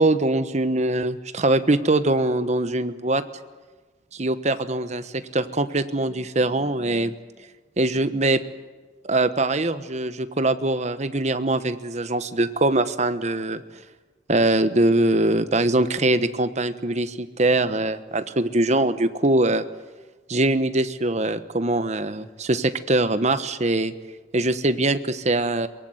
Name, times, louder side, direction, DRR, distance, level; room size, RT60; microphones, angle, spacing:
voice 1, 0.0-3.2 4.1-7.1 7.8-8.4 9.0-13.6 14.3-19.6 20.3-23.9 24.3-25.7, right 2 dB, 40° right, 11 dB, 1.2 m, -22 dB
23.0 x 22.5 x 8.1 m, 1.3 s
head